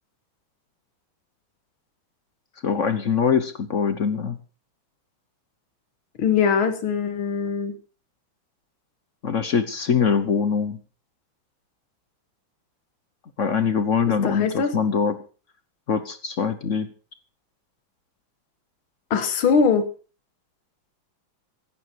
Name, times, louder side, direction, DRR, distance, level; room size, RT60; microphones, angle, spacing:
voice 1, 2.6-4.4 9.2-10.8 13.4-15.2 15.9-16.9, left 6 dB, 45° left, 11 dB, 1.1 m, -23 dB
voice 2, 6.2-7.7 14.2-14.7 19.1-19.9, left 6 dB, 90° left, 10 dB, 2.3 m, -21 dB
16.0 x 12.0 x 4.6 m, 0.37 s
omnidirectional pair, 2.2 m